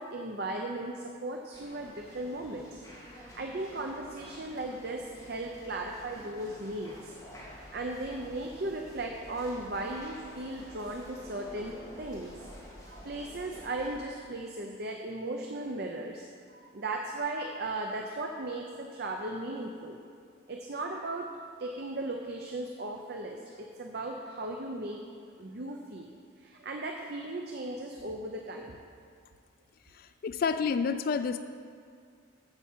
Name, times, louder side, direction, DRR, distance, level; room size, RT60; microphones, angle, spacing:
voice 1, 0.0-7.1 7.4-12.5 12.8-16.3 16.5-20.0 20.5-21.3 21.6-25.0 25.4-26.1 26.4-28.8, right 2 dB, 50° right, 2 dB, 0.7 m, -37 dB
sound 1, 1.5-14.0, equal, 15° left, 2.2 m, -50 dB
voice 2, 30.0-31.4, left 5 dB, 45° left, 10 dB, 0.3 m, -29 dB
8.9 x 7.2 x 7.3 m, 2.2 s
head